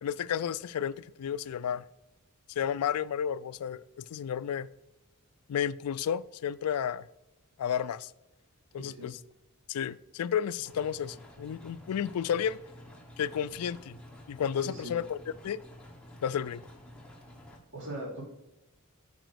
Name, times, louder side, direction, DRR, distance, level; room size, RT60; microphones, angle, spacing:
voice 1, 0.0-1.8 2.6-4.7 5.5-7.1 7.6-8.1 8.7-9.2 9.7-12.6 13.2-14.0 14.3-15.2 15.4-15.6 16.2-16.6, left 8 dB, 70° left, 0.3 m, -32 dB
voice 2, 8.7-9.1 14.6-15.0 17.7-18.2, right 1 dB, 60° right, 2.9 m, -40 dB
sound 1, 10.6-17.6, left 1 dB, 5° left, 1.2 m, -51 dB
9.0 x 5.0 x 4.7 m
head